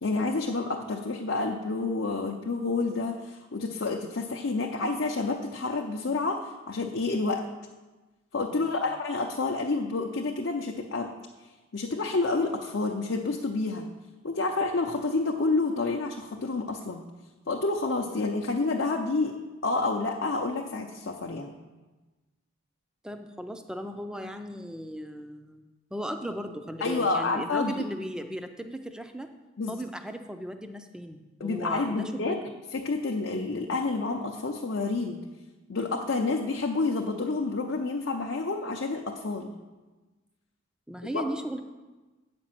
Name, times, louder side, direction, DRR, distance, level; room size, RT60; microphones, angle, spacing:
voice 1, 0.0-7.4 8.3-11.1 11.7-13.9 14.2-17.1 17.5-19.4 19.6-21.5 26.8-27.8 29.6-29.8 31.4-32.4 32.7-35.2 35.7-39.5 41.1-41.2, left 3 dB, 55° left, 1 dB, 0.6 m, -29 dB
voice 2, 8.5-8.8 18.1-18.4 23.0-25.6 25.9-29.3 29.7-32.4 40.9-41.6, equal, 5° right, 7 dB, 0.4 m, -37 dB
8.5 x 5.2 x 7.5 m, 1.2 s
head